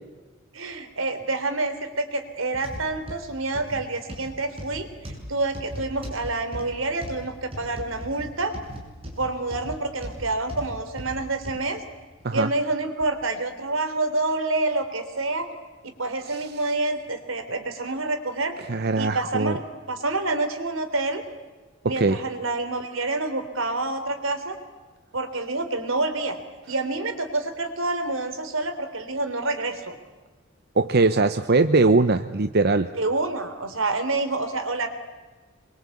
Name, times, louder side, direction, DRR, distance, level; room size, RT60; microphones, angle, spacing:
voice 1, 0.5-8.6 9.2-11.8 12.3-15.5 15.8-18.5 19.0-21.2 21.8-24.6 25.1-26.4 26.7-30.0 32.9-34.9, right 2 dB, 85° right, 8 dB, 3.4 m, -28 dB
sound 1, 2.5-11.7 12.2-12.3 13.0-13.1, equal, 30° right, 6.9 m, -38 dB
voice 2, 18.7-19.6 21.8-22.2 30.8-32.9, right 3 dB, 55° right, 10 dB, 0.8 m, -21 dB
26.5 x 23.0 x 8.5 m, 1.3 s
head